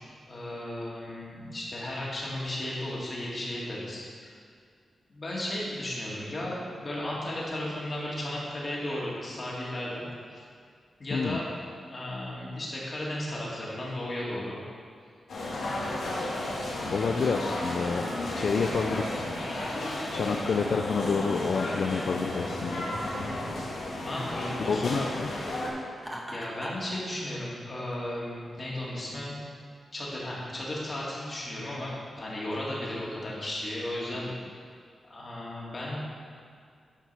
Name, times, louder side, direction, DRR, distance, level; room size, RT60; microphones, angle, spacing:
voice 1, 0.3-4.3 5.1-10.4 11.0-11.5 11.9-14.6 24.0-25.1 26.3-29.4 29.9-34.3 35.1-36.0, left 1 dB, 40° left, -5 dB, 2.6 m, -35 dB
Mall Ambience, 15.3-25.7, left 1 dB, 85° left, 1.8 m, -33 dB
voice 2, 16.9-18.1 18.3-19.3 20.1-22.8 24.6-25.3, left 5 dB, 70° left, 3 dB, 0.4 m, -28 dB
Laughter, 26.0-26.9, equal, 15° right, 1.3 m, -39 dB
10.5 x 4.7 x 5.9 m, 2.2 s
cardioid pair, 95°, 0 cm